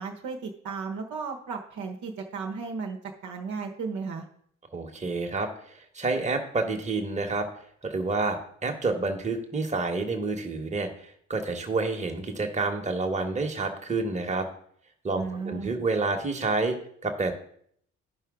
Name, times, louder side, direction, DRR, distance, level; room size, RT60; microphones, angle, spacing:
voice 1, 0.0-3.0 3.2-4.2 15.1-15.7, right 5 dB, 50° right, 1 dB, 1.1 m, -34 dB
voice 2, 4.7-7.5 7.8-14.5 15.0-16.7 17.0-17.3, right 3 dB, 20° right, 3 dB, 1.4 m, -29 dB
12.5 x 5.5 x 3.7 m, 0.64 s
figure-of-eight pair, 45°, 38 cm